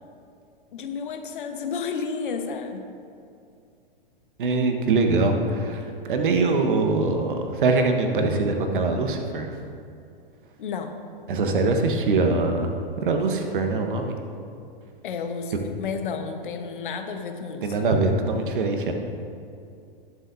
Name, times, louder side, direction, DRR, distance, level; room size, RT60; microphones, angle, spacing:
voice 1, 0.7-2.9 10.6-10.9 15.0-17.9, left 5 dB, 60° left, 5 dB, 1.2 m, -32 dB
voice 2, 4.4-9.6 11.3-14.2 17.6-18.9, right 3 dB, 60° right, 5 dB, 1.3 m, -23 dB
19.0 x 7.7 x 2.7 m, 2.5 s
figure-of-eight pair, 100°, 29 cm